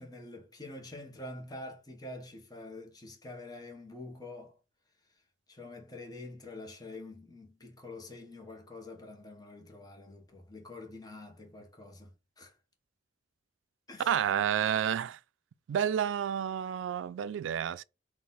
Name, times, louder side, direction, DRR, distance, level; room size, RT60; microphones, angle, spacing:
voice 1, 0.0-4.6 5.1-5.2 5.5-12.6 13.9-14.3, left 2 dB, 20° left, 1.0 m, -46 dB
voice 2, 14.1-15.2 15.7-17.8, right 9 dB, 90° right, 0.3 m, -30 dB
3.9 x 2.4 x 3.9 m
head